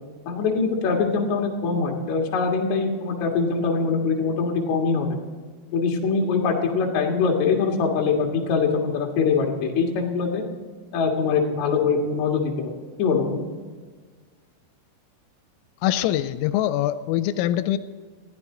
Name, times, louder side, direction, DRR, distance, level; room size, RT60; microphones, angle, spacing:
voice 1, 0.3-5.2 5.7-10.4 10.9-12.7 13.0-13.5, left 5 dB, 55° left, 0 dB, 2.2 m, -23 dB
voice 2, 15.8-17.8, left 13 dB, 85° left, 13 dB, 3.2 m, -23 dB
20.5 x 14.5 x 3.8 m, 1.5 s
omnidirectional pair, 5.8 m